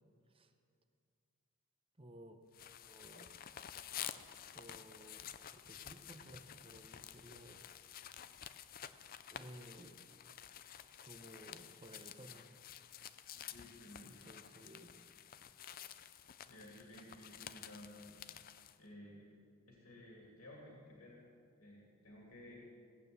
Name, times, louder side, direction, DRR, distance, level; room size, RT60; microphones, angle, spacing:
voice 1, 2.0-2.4 2.8-3.3 4.5-7.7 9.3-10.0 11.0-12.6 14.0-15.0, right 1 dB, 25° right, 7 dB, 0.8 m, -56 dB
sound 1, 2.5-18.8, left 10 dB, 40° left, 0.4 m, -51 dB
voice 2, 13.3-14.2 16.4-18.1 18.8-19.3 19.7-21.2 21.6-22.6, left 1 dB, 75° left, -3 dB, 2.5 m, -55 dB
16.5 x 9.0 x 6.8 m, 2.3 s
head